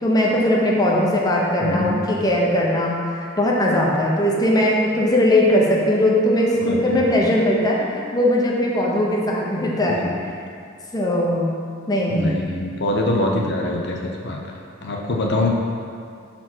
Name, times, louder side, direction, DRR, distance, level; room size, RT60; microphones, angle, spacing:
voice 1, 0.0-10.0 10.9-11.5 11.9-12.3, left 1 dB, 20° left, -3 dB, 0.9 m, -19 dB
voice 2, 1.6-2.0 6.6-7.0 10.0-10.2 12.1-15.5, left 1 dB, 55° left, 0 dB, 0.8 m, -24 dB
5.7 x 4.4 x 6.1 m, 2.3 s
head